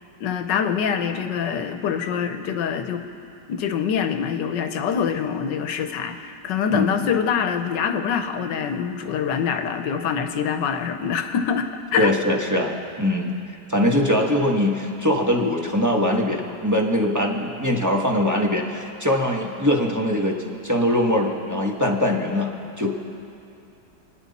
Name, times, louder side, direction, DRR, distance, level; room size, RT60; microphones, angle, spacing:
voice 1, 0.2-3.0 3.5-12.1, left 7 dB, 75° left, 7 dB, 1.5 m, -25 dB
voice 2, 12.0-13.3 13.7-20.4 20.6-22.5 22.8-22.9, left 1 dB, 10° right, -1 dB, 1.1 m, -22 dB
28.5 x 9.9 x 4.2 m, 2.7 s
omnidirectional pair, 2.0 m